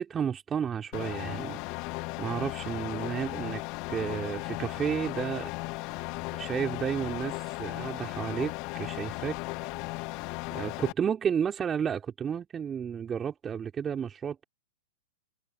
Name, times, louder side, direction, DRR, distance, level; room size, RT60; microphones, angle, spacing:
voice 1, 0.0-1.6 1.9-3.6 3.9-5.5 5.9-9.4 10.5-14.4, right 7 dB, 20° right, 3.8 m, -32 dB
sound 1, 0.9-10.9, left 25 dB, 45° left, 1.1 m, -36 dB
hypercardioid pair, 110°, 0 cm